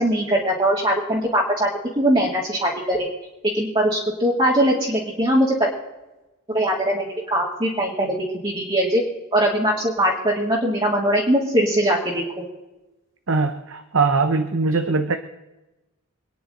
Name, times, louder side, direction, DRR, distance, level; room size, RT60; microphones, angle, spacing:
voice 1, 0.0-1.7 2.0-3.1 3.5-5.6 6.5-8.2 8.4-9.0 9.3-12.5, right 1 dB, 25° right, -6 dB, 2.6 m, -21 dB
voice 2, 13.3-15.2, right 4 dB, 65° right, 8 dB, 0.9 m, -21 dB
26.5 x 10.0 x 3.9 m, 1.0 s
head